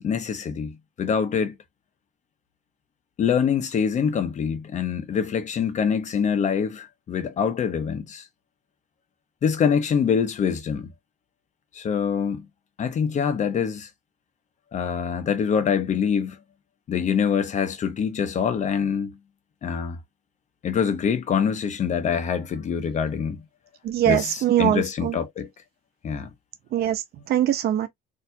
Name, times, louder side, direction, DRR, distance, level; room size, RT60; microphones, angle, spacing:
voice 1, 0.0-1.5 3.2-8.3 9.4-10.9 11.7-12.5 12.8-13.9 14.7-16.4 16.9-19.2 19.6-20.0 20.6-23.4 24.0-25.5 26.0-26.3, left 7 dB, 45° left, 0.9 m, -25 dB
voice 2, 23.8-25.2 26.7-27.9, right 11 dB, 65° right, 0.9 m, -22 dB
4.2 x 2.8 x 2.3 m
cardioid pair, 110°, 17 cm